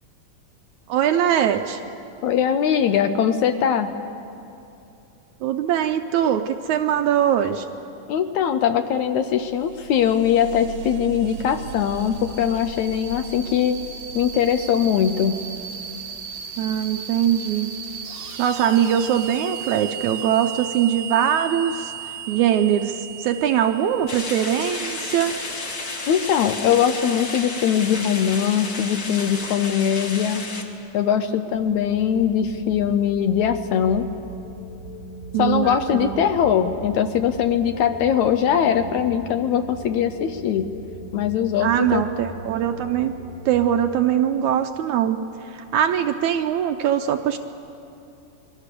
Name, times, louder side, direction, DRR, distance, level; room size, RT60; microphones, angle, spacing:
voice 1, 0.9-1.8 5.4-7.7 16.6-17.7 18.4-21.9 22.3-25.3 35.3-36.3 41.6-43.1 43.5-45.2 45.5-47.4, right 10 dB, 75° right, 7 dB, 1.9 m, -22 dB
voice 2, 2.2-3.9 8.1-13.8 14.2-15.4 26.1-30.5 30.9-34.1 35.4-40.7 41.1-42.0, left 8 dB, 70° left, 8 dB, 1.9 m, -21 dB
sound 1, 9.3-25.6, right 7 dB, 55° right, 1.3 m, -36 dB
sound 2, 24.1-30.6, left 3 dB, 35° left, 1.7 m, -32 dB
sound 3, 31.5-43.6, equal, 50° left, 3.2 m, -39 dB
27.5 x 22.5 x 6.8 m, 2.7 s
omnidirectional pair, 3.9 m